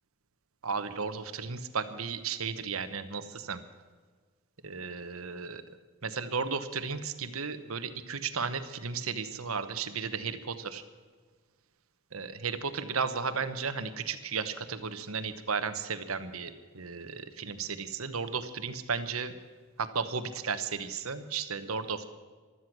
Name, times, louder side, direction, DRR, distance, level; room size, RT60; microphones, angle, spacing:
voice 1, 0.6-3.6 4.6-5.6 6.0-10.8 12.1-19.3 19.8-22.1, right 5 dB, 85° right, 10 dB, 1.2 m, -34 dB
16.0 x 12.5 x 6.1 m, 1.5 s
head